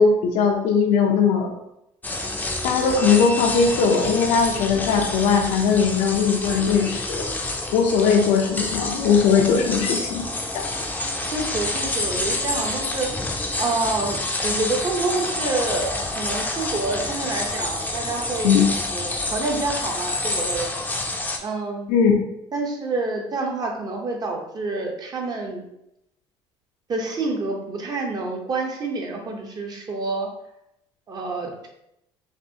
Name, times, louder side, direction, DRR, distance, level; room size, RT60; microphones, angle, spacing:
voice 1, 0.0-1.5 2.6-7.2 7.7-10.2 10.5-10.6 18.4-18.6 21.9-22.1, left 5 dB, 85° left, 2 dB, 0.7 m, -19 dB
sound 1, 2.0-21.4, left 2 dB, 15° left, 0.6 m, -28 dB
voice 2, 11.3-13.1 13.6-18.6 18.9-20.7 21.4-21.9 22.5-25.6 26.9-30.3 31.1-31.7, right 3 dB, 35° right, 1 dB, 0.9 m, -28 dB
5.8 x 2.6 x 2.9 m, 0.83 s
cardioid pair, 105°, 12 cm